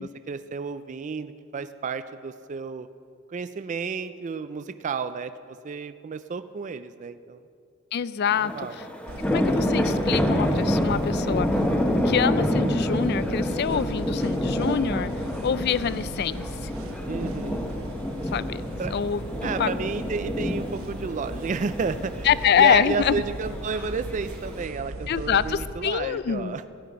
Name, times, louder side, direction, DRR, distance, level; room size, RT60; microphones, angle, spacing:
voice 1, 0.3-2.9 3.3-7.4 8.4-8.8 17.0-17.7 18.8-18.9 19.4-22.3 22.6-26.7, right 5 dB, 35° right, 11 dB, 0.3 m, -31 dB
voice 2, 7.9-8.9 9.3-11.6 12.0-16.7 18.3-18.6 18.9-19.8 22.2-23.2 25.1-26.6, left 8 dB, 50° left, 17 dB, 0.4 m, -25 dB
sound 1, 8.3-24.6, equal, 5° left, 0.9 m, -28 dB
sound 2, 9.1-25.7, right 1 dB, 80° right, 1.1 m, -37 dB
14.5 x 5.8 x 9.5 m, 2.4 s
head